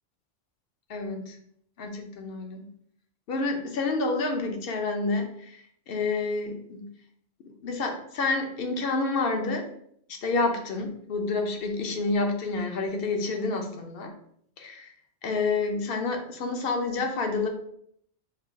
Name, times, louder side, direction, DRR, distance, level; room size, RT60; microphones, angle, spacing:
voice 1, 0.9-1.4 1.8-2.7 3.3-6.8 7.6-9.7 10.1-14.1 14.6-14.9 15.2-17.5, left 3 dB, 55° left, 4 dB, 0.9 m, -29 dB
3.8 x 2.4 x 4.6 m, 0.68 s
omnidirectional pair, 1.2 m